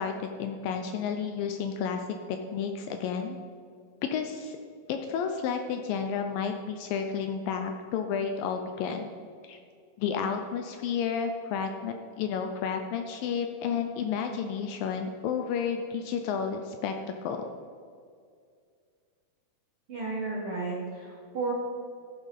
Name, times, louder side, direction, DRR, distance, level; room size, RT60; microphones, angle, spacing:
voice 1, 0.0-3.4 4.1-4.6 4.9-9.1 9.4-9.6 10.0-16.9 17.2-17.4, left 6 dB, 80° left, 5 dB, 2.1 m, -31 dB
voice 2, 19.9-21.5, right 3 dB, 55° right, -4 dB, 1.6 m, -33 dB
14.5 x 5.8 x 5.3 m, 2.2 s
omnidirectional pair, 4.4 m